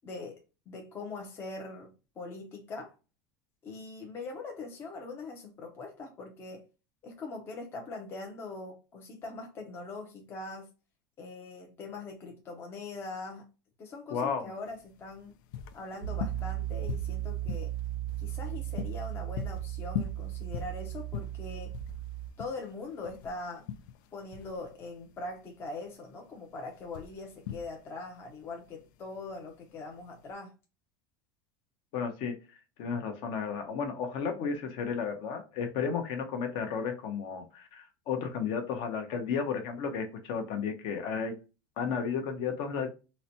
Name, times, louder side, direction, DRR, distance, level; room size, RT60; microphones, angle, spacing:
voice 1, 0.0-2.9 3.6-6.7 7.0-10.7 11.2-13.5 13.8-15.3 15.7-17.7 18.2-21.7 22.4-23.7 24.1-30.5, left 3 dB, 20° left, 0.6 m, -42 dB
voice 2, 14.1-14.5 31.9-32.4 32.8-41.4 41.8-42.9, left 6 dB, 50° left, 0.8 m, -33 dB
sound 1, 14.7-30.3, left 9 dB, 85° left, 0.4 m, -42 dB
Piano, 16.0-22.3, right 15 dB, 30° right, 0.6 m, -36 dB
4.0 x 2.2 x 2.8 m
cardioid pair, 165°, 11 cm